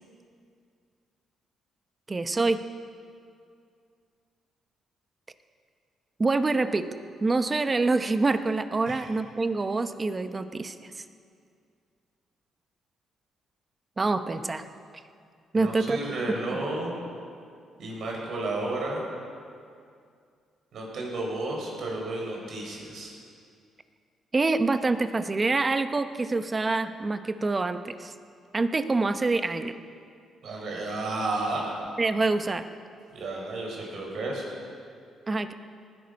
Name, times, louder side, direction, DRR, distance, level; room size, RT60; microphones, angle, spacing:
voice 1, 2.1-2.6 6.2-6.9 7.2-11.0 14.0-14.6 15.5-16.0 16.5-16.6 24.3-28.1 28.5-29.8 32.0-32.7 35.3-35.5, right 3 dB, 25° right, 10 dB, 0.8 m, -26 dB
voice 2, 15.5-16.9 17.8-19.0 20.7-23.1 30.4-31.7 33.1-34.4, right 2 dB, 65° right, -1 dB, 5.0 m, -32 dB
19.5 x 12.5 x 5.3 m, 2.3 s
cardioid pair, 90°, 0 cm